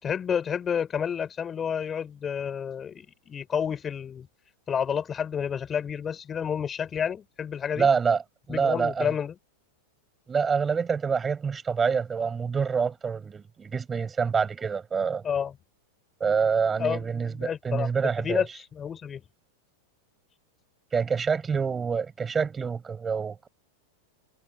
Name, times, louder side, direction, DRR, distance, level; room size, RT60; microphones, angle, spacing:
voice 1, 0.0-4.3 4.7-7.9 8.5-9.3 15.2-15.5 16.8-17.9 18.2-19.2, left 7 dB, 25° left, 6.0 m, -30 dB
voice 2, 7.7-8.2 8.5-9.1 10.3-15.2 16.2-18.4 20.9-23.5, right 6 dB, 20° right, 7.5 m, -26 dB
figure-of-eight pair, 95°, 0 cm